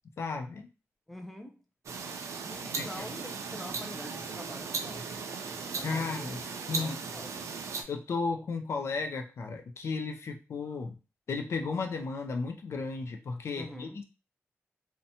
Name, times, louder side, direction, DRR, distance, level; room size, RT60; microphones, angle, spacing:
voice 1, 0.2-0.7 2.6-2.9 5.8-6.4 6.7-7.0 7.9-11.0 11.3-14.0, left 4 dB, 60° left, 0.4 m, -34 dB
voice 2, 1.1-1.6 2.4-5.3 5.6-6.4 6.7-7.6 13.6-14.0, left 1 dB, 5° left, 0.4 m, -45 dB
sound 1, 1.9-7.8, right 5 dB, 75° right, 0.4 m, -37 dB
2.7 x 2.1 x 2.7 m
wide cardioid pair, 115°, 5 cm